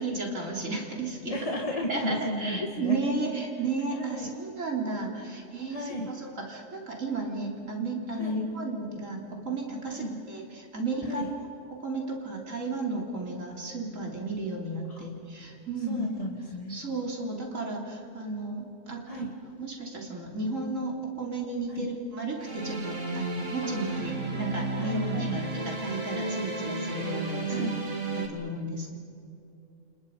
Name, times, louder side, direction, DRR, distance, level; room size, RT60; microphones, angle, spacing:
voice 1, 0.0-1.4 1.9-9.2 9.4-11.3 11.7-16.1 16.7-19.3 19.6-27.7 28.2-28.9, right 3 dB, 85° right, 0 dB, 3.8 m, -33 dB
voice 2, 1.3-3.0 3.9-4.3 5.7-6.1 8.1-8.5 9.9-10.1 11.0-11.2 14.9-15.1 15.9-16.8 19.1-19.3 21.7-21.9 23.6-24.1 24.8-25.4 27.5-27.8, left 1 dB, 30° left, 0 dB, 2.1 m, -34 dB
sound 1, 22.4-28.3, right 3 dB, 70° right, 3.2 m, -33 dB
29.5 x 29.0 x 5.4 m, 2.6 s
omnidirectional pair, 1.3 m